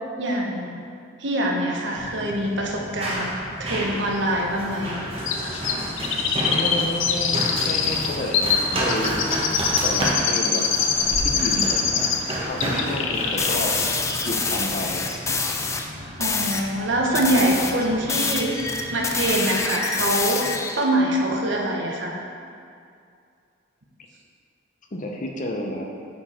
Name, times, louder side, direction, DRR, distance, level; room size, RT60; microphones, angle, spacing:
voice 1, 0.2-0.7 1.2-3.3 3.6-5.0 16.2-22.2, right 1 dB, 65° right, -1 dB, 1.0 m, -24 dB
Run, 2.0-19.3, right 1 dB, 30° right, 1.1 m, -31 dB
Chirp tweet, 5.3-12.3 12.6-13.5 13.8-13.9, left 6 dB, 75° left, 0.6 m, -24 dB
voice 2, 6.5-9.2 9.8-10.7 11.2-12.1 12.4-13.8 14.2-15.1 24.9-25.8, left 1 dB, 40° left, 1 dB, 0.7 m, -30 dB
sound 1, 13.4-15.9 16.2-16.7 17.1-20.8, left 4 dB, 15° left, 0.4 m, -26 dB
8.6 x 4.7 x 4.3 m, 2.4 s
head